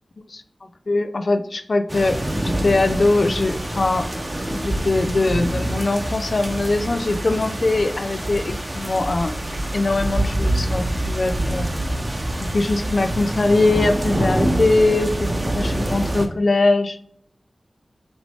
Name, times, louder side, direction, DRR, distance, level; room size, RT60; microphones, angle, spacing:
voice 1, 0.9-4.1 4.5-9.3 9.7-11.7 12.5-15.3 15.5-17.0, left 2 dB, 65° left, 8 dB, 0.3 m, -21 dB
sound 1, 1.9-16.3, right 1 dB, 25° right, 0.7 m, -25 dB
5.9 x 2.7 x 3.3 m, 0.65 s
wide cardioid pair, 65°, 0 cm